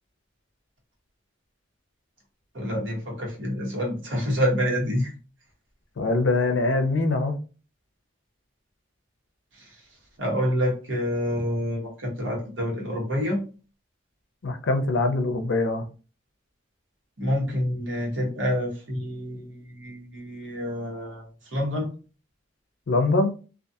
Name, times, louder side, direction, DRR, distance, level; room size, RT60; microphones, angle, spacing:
voice 1, 2.5-5.1 9.5-9.7 10.2-13.4 17.2-21.9, equal, 90° right, 1.1 m, -27 dB
voice 2, 6.0-7.4 14.4-15.9 22.9-23.3, left 2 dB, 90° left, 0.5 m, -23 dB
2.6 x 2.4 x 2.3 m
head